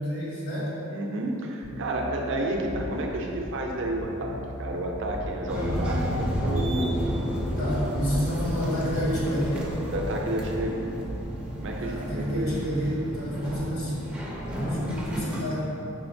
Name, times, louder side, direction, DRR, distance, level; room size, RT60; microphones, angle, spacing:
voice 1, 0.0-0.7 7.6-9.7 11.8-14.2 14.5-15.7, equal, 75° left, -7 dB, 1.2 m, -29 dB
voice 2, 0.9-7.4 9.9-10.9 11.6-12.5, right 1 dB, 60° right, 1 dB, 0.5 m, -31 dB
Bass guitar, 1.6-11.2, equal, 60° left, 0.7 m, -38 dB
sound 1, 5.5-15.4, equal, 5° right, 0.4 m, -31 dB
5.0 x 3.5 x 2.6 m, 2.9 s
head